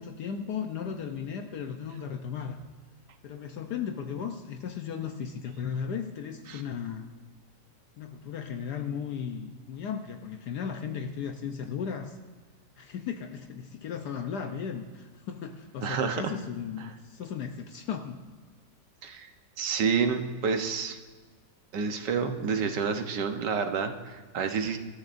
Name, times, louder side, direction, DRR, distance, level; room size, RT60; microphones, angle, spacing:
voice 1, 0.0-2.6 3.2-7.1 8.0-12.2 12.8-18.2, left 7 dB, 70° left, 5 dB, 1.3 m, -36 dB
voice 2, 15.8-16.3 19.0-19.3 19.6-21.0 21.7-24.8, right 5 dB, 75° right, 6 dB, 1.6 m, -29 dB
25.5 x 13.5 x 2.6 m, 1.4 s
omnidirectional pair, 1.9 m